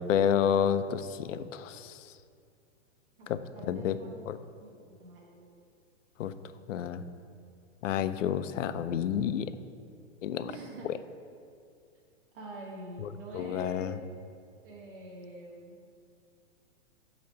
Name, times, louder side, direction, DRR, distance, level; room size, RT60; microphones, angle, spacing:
voice 1, 0.0-2.1 3.3-4.0 4.3-4.4 6.2-6.3 6.7-7.0 7.8-9.5 10.2-10.5 10.8-11.0 13.0-14.0, left 9 dB, 85° left, 12 dB, 0.5 m, -30 dB
voice 2, 3.5-4.1 4.6-4.7 5.0-5.5 10.4-10.9 12.3-13.9 14.6-15.8, right 2 dB, 45° right, -3 dB, 1.1 m, -45 dB
8.6 x 2.9 x 5.5 m, 2.4 s
hypercardioid pair, 180°, 37 cm